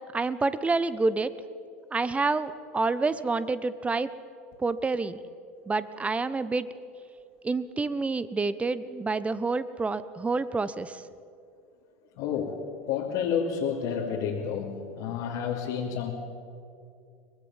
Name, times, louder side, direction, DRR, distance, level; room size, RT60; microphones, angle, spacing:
voice 1, 0.1-1.3 1.9-4.1 4.6-5.2 5.7-6.7 7.4-11.0, right 3 dB, 20° right, 15 dB, 1.2 m, -28 dB
voice 2, 12.2-12.6 12.9-16.1, left 7 dB, 65° left, -3 dB, 2.8 m, -30 dB
23.5 x 21.5 x 7.4 m, 2.5 s
hypercardioid pair, 80°, 7 cm